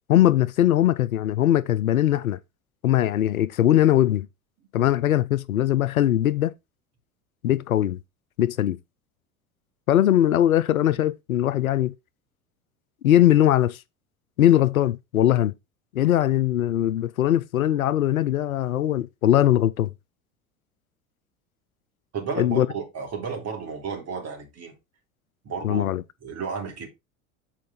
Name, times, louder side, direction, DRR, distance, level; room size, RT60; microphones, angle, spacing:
voice 1, 0.0-2.4 2.8-4.3 4.7-6.5 7.4-8.0 8.4-8.8 9.9-11.9 13.0-13.8 14.4-15.5 15.9-19.9 22.4-22.7 25.6-26.0, left 12 dB, 75° left, 0.6 m, -20 dB
voice 2, 22.1-24.7 25.4-25.9 26.2-26.9, right 5 dB, 35° right, 3.0 m, -32 dB
7.6 x 4.7 x 4.2 m
figure-of-eight pair, 75°, 42 cm